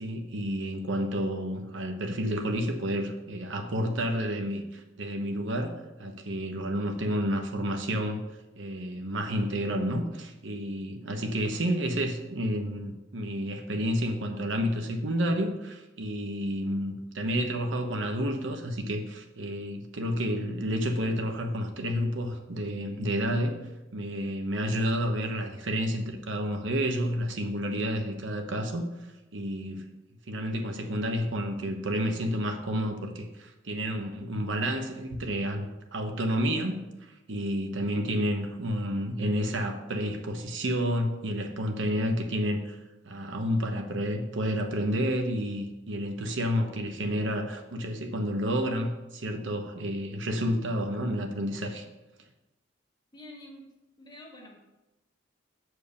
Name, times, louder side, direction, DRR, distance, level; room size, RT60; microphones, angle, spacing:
voice 1, 0.0-8.2 8.6-23.6 23.9-28.8 29.3-29.9 30.3-35.7 35.9-36.8 37.3-42.8 43.0-51.8, equal, 75° right, 4 dB, 1.0 m, -30 dB
voice 2, 53.1-53.7 54.0-54.6, left 1 dB, 25° left, -1 dB, 1.5 m, -47 dB
7.0 x 4.7 x 6.3 m, 1.0 s
head